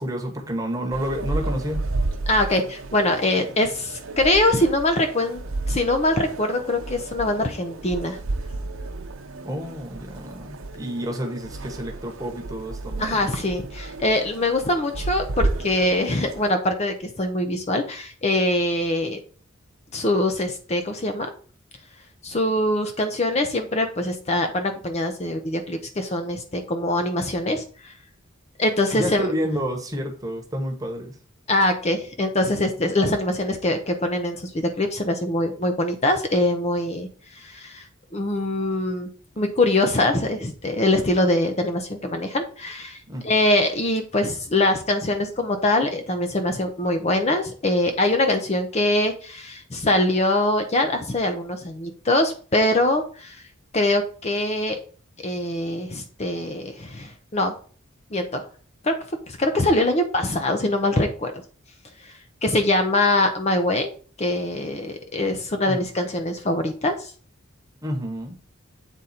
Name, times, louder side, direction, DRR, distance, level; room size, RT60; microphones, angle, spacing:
voice 1, 0.0-1.8 9.4-13.3 28.9-31.2 43.1-43.3 65.6-65.9 67.8-68.4, equal, 15° right, 2 dB, 1.2 m, -29 dB
sound 1, 0.9-16.5, right 2 dB, 75° right, 0.8 m, -32 dB
voice 2, 2.3-5.4 5.7-8.2 13.0-19.2 19.9-21.3 22.2-27.9 28.6-29.3 31.5-37.1 37.3-37.8 38.1-39.1 39.4-43.0 43.2-53.4 53.7-54.8 55.2-57.5 58.1-58.4 58.8-58.9 59.3-61.3 62.0-62.1 62.4-63.9 64.2-67.1, left 1 dB, 30° left, 6 dB, 0.6 m, -23 dB
8.1 x 3.8 x 4.2 m, 0.42 s
head